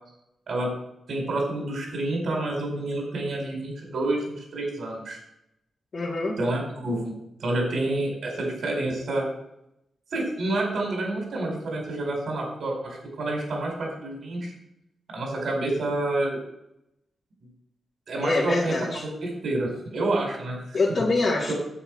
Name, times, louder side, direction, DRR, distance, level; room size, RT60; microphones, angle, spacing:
voice 1, 1.1-5.2 6.4-7.1 7.4-9.3 10.1-14.5 15.1-16.4 18.1-18.7 19.0-20.8 21.5-21.6, right 2 dB, 65° right, 0 dB, 4.8 m, -28 dB
voice 2, 5.9-6.4 18.2-19.0 20.7-21.5, left 3 dB, 50° left, -5 dB, 2.5 m, -25 dB
10.0 x 8.0 x 4.8 m, 0.81 s
wide cardioid pair, 115°, 0 cm